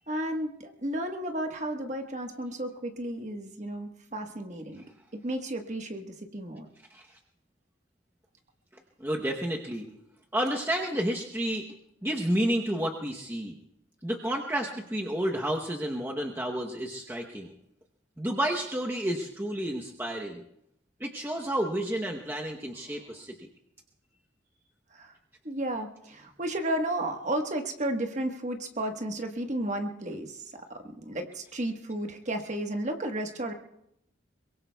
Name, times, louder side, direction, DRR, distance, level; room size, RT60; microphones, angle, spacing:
voice 1, 0.1-4.8 5.1-6.7 22.9-23.2 24.9-25.1 25.4-33.5, right 1 dB, 35° right, 4 dB, 1.3 m, -33 dB
voice 2, 9.0-9.9 10.3-11.7 12.0-13.6 14.0-17.5 18.2-20.4 21.0-23.5, right 1 dB, 10° right, 0 dB, 0.9 m, -30 dB
23.0 x 22.5 x 2.3 m, 0.78 s
head